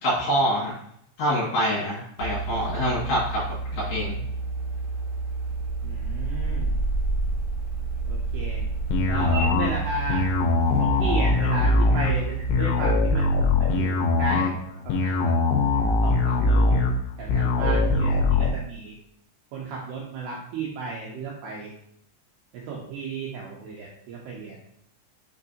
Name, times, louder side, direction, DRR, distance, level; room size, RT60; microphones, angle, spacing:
voice 1, 0.0-0.7 1.2-3.4 3.7-4.2, equal, 55° left, -7 dB, 2.7 m, -25 dB
sound 1, 2.2-12.5, right 3 dB, 55° right, 1.2 m, -29 dB
voice 2, 5.8-6.7 8.1-8.6 9.1-10.2 10.8-13.3 13.6-15.1 16.0-16.8 17.2-18.9 19.5-21.7 22.5-24.6, right 3 dB, 90° right, -3 dB, 2.3 m, -34 dB
sound 2, 8.9-18.5, left 3 dB, 80° left, 2.6 m, -22 dB
6.4 x 5.6 x 2.6 m, 0.70 s
omnidirectional pair, 5.8 m